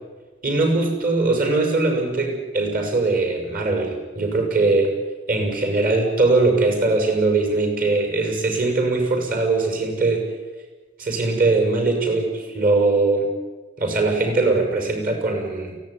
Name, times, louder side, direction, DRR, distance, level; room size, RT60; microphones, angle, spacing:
voice 1, 0.4-4.9 5.3-10.3 11.0-13.3 13.8-15.8, right 3 dB, 50° right, 4 dB, 6.7 m, -21 dB
23.5 x 18.0 x 9.9 m, 1.2 s
head